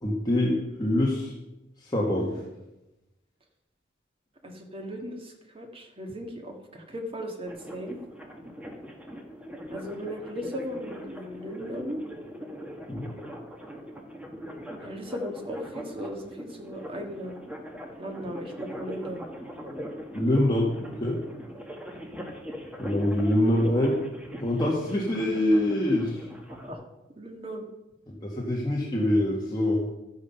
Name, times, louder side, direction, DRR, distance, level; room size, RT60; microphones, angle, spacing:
voice 1, 0.0-1.3 1.8-2.3 12.9-13.0 20.1-20.7 21.0-21.2 22.8-24.0 24.4-26.3 28.1-29.8, left 1 dB, 20° left, -4 dB, 1.8 m, -25 dB
voice 2, 4.4-8.0 9.7-12.0 14.8-17.4 18.0-19.3 26.6-26.8 27.2-27.7, equal, 30° right, 2 dB, 1.9 m, -37 dB
sound 1, 7.5-26.7, equal, 5° right, 1.5 m, -41 dB
12.5 x 9.7 x 5.6 m, 0.97 s
head